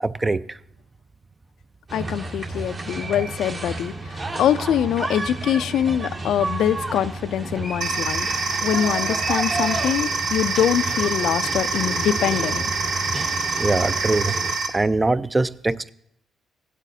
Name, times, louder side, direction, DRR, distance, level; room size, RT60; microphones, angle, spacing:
voice 1, 0.0-0.6 13.6-14.4 14.7-15.9, right 2 dB, 20° right, 0.4 m, -22 dB
voice 2, 1.9-12.7, left 10 dB, 75° left, 0.3 m, -24 dB
sound 1, 1.9-14.5, right 2 dB, 45° right, 2.1 m, -31 dB
sound 2, 7.8-14.7, right 4 dB, 75° right, 1.7 m, -26 dB
17.0 x 8.2 x 2.7 m
cardioid pair, 90°, 0 cm